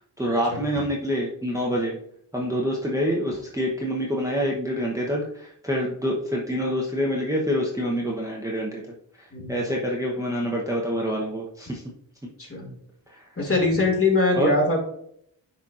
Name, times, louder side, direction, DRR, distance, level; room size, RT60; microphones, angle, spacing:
voice 1, 0.2-2.0 2.3-8.8 9.2-11.8 13.1-13.2 14.4-14.5, equal, 10° right, -3 dB, 0.8 m, -26 dB
voice 2, 12.4-12.7 13.4-14.8, left 3 dB, 30° left, -1 dB, 2.4 m, -22 dB
10.0 x 4.2 x 2.4 m, 0.70 s
wide cardioid pair, 110°, 41 cm